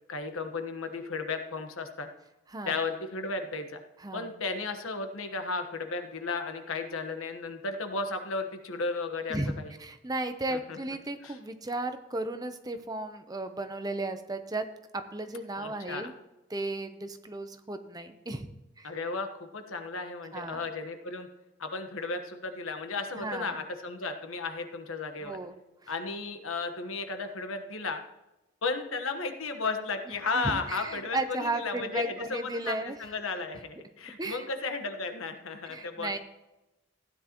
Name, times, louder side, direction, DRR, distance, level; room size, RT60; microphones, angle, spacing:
voice 1, 0.1-2.1 2.7-3.8 4.1-9.7 10.5-10.8 11.2-11.4 15.6-16.1 18.8-21.3 21.6-25.4 25.9-28.0 28.6-36.2, left 4 dB, 80° left, 6 dB, 1.2 m, -34 dB
voice 2, 9.8-14.7 14.9-16.1 16.5-18.5 18.8-18.9 20.3-20.6 23.2-23.6 25.2-25.9 30.4-33.0 34.2-34.5 35.7-36.2, right 2 dB, 20° right, 8 dB, 0.6 m, -35 dB
15.5 x 9.9 x 3.0 m, 0.99 s
head